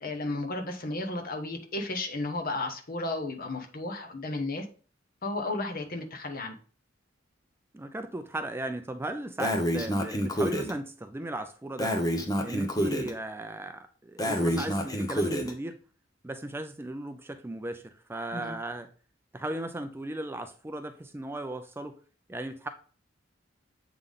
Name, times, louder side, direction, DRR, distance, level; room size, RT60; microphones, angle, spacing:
voice 1, 0.0-4.6 5.2-6.6 18.3-18.6, left 2 dB, 45° left, 1.0 m, -33 dB
voice 2, 7.7-12.0 12.4-15.8 16.2-18.9 19.3-22.0 22.3-22.7, right 1 dB, 10° right, 0.4 m, -36 dB
Breathing, 9.4-10.7 11.8-13.1 14.2-15.5, equal, 20° left, 0.8 m, -28 dB
7.8 x 3.6 x 3.7 m
head